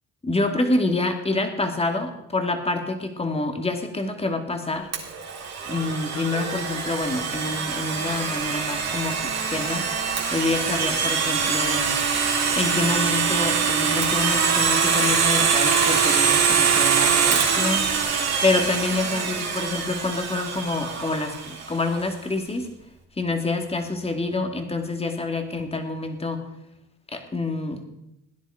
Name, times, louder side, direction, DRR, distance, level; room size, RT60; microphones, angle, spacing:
voice 1, 0.2-4.9 5.7-9.8 10.3-12.0 12.6-18.1 18.4-22.7 23.2-26.4 27.1-27.8, left 3 dB, 20° left, 5 dB, 2.3 m, -27 dB
Domestic sounds home sounds, 4.9-21.7, right 6 dB, 60° right, 3.5 m, -23 dB
17.0 x 10.0 x 5.0 m, 0.87 s
cardioid pair, 90°, 30 cm